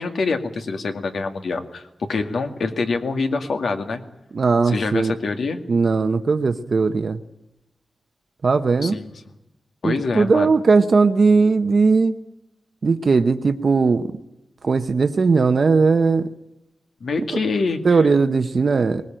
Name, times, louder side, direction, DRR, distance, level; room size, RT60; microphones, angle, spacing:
voice 1, 0.0-4.0 4.6-5.6 8.8-9.1 9.8-10.5 17.0-18.1, left 4 dB, 70° left, 6 dB, 2.2 m, -25 dB
voice 2, 4.3-5.1 5.7-7.2 8.4-9.0 9.8-12.2 12.8-14.0 14.6-16.3 17.8-19.0, right 4 dB, 50° right, 8 dB, 0.9 m, -18 dB
20.0 x 20.0 x 9.0 m, 0.92 s
wide cardioid pair, 115°, 0 cm